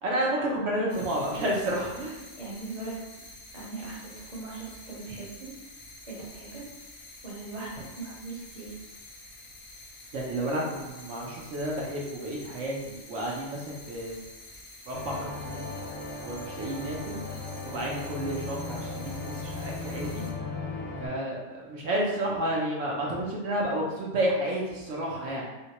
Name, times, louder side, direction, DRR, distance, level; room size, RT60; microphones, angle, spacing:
voice 1, 0.0-2.2 10.1-14.2 14.9-15.7 16.2-17.2 17.6-20.2 21.0-25.5, right 1 dB, 70° right, -3 dB, 1.0 m, -31 dB
sound 1, 0.9-20.3, left 2 dB, 65° left, 0.9 m, -48 dB
voice 2, 2.4-2.9 3.5-5.5 6.1-6.6 7.2-8.7, right 3 dB, 35° right, -6 dB, 0.8 m, -39 dB
sound 2, 14.9-21.1, left 3 dB, 40° left, 0.7 m, -37 dB
3.8 x 2.1 x 2.8 m, 1.1 s
omnidirectional pair, 1.3 m